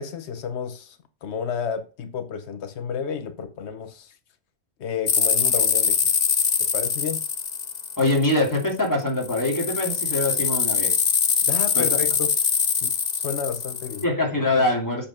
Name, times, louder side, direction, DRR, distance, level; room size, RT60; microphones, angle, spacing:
voice 1, 0.0-4.1 4.8-6.0 6.6-7.2 11.5-12.3 12.8-14.0, left 7 dB, 90° left, 1.1 m, -31 dB
sound 1, 5.1-8.6 9.2-14.0, left 6 dB, 45° left, 0.8 m, -23 dB
voice 2, 8.0-11.0 11.7-11.9 14.0-15.1, left 2 dB, 15° left, 2.7 m, -23 dB
7.8 x 4.3 x 5.9 m
omnidirectional pair, 1.1 m